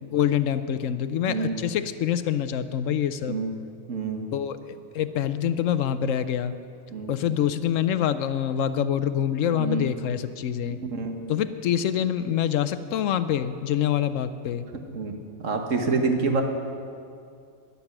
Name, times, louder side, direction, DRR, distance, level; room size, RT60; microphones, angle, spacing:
voice 1, 0.0-3.4 4.3-6.5 7.1-10.8 11.3-14.7, left 9 dB, 70° left, 12 dB, 0.9 m, -26 dB
voice 2, 3.9-4.2 6.9-7.1 9.6-9.9 10.9-11.1 14.9-15.1 15.4-16.4, right 4 dB, 65° right, 4 dB, 1.6 m, -26 dB
14.0 x 11.0 x 6.0 m, 2.3 s
omnidirectional pair, 1.5 m